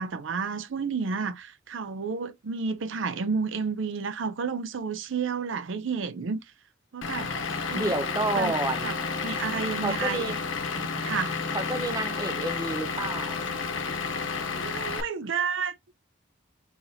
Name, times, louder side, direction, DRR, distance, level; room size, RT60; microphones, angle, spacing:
voice 1, 0.0-6.4 6.9-7.3 7.7-7.9 8.3-8.5 8.8-9.0 9.2-10.4 10.8-11.4 14.5-15.9, right 5 dB, 65° right, 0.5 m, -31 dB
Vehicle / Engine, 7.0-15.0, left 5 dB, 70° left, 0.8 m, -31 dB
voice 2, 7.7-9.0 9.8-10.4 11.5-13.5, right 2 dB, 15° right, 0.6 m, -30 dB
4.2 x 3.9 x 2.7 m
head